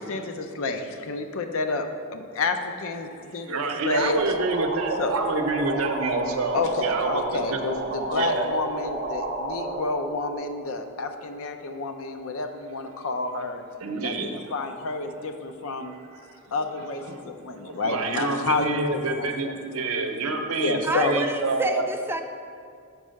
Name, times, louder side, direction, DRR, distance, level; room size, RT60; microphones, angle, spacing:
voice 1, 0.0-1.8 2.1-4.4 5.0-5.1 6.5-13.6 14.0-15.9 16.5-19.5 20.6-21.2, left 3 dB, 65° left, 7 dB, 0.5 m, -29 dB
voice 2, 3.5-7.6 8.1-8.5 13.8-14.5 15.9-16.0 17.1-17.2 17.6-21.9, right 3 dB, 70° right, 4 dB, 0.7 m, -27 dB
sound 1, 4.0-11.3, right 2 dB, 35° right, 0.8 m, -32 dB
voice 3, 20.8-22.2, right 1 dB, 10° right, 6 dB, 0.3 m, -28 dB
5.5 x 4.7 x 6.3 m, 2.4 s
head